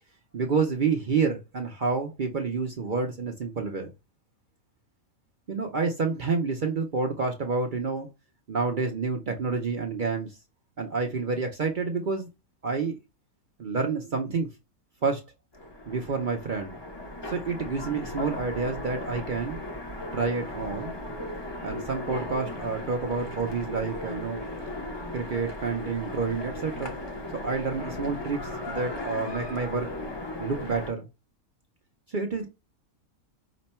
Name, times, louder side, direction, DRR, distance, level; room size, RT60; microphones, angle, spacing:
voice 1, 0.3-3.9 5.5-8.1 8.5-10.4 10.8-12.3 12.6-13.0 13.6-14.5 15.0-15.2 15.9-16.7 17.3-19.6 20.1-21.0 21.6-24.4 25.1-27.0 27.3-29.9 30.4-31.1 32.1-32.5, right 4 dB, 55° right, 0.6 m, -29 dB
Train, 15.5-30.9, left 1 dB, 25° left, 0.6 m, -37 dB
5.1 x 2.2 x 4.1 m
omnidirectional pair, 1.5 m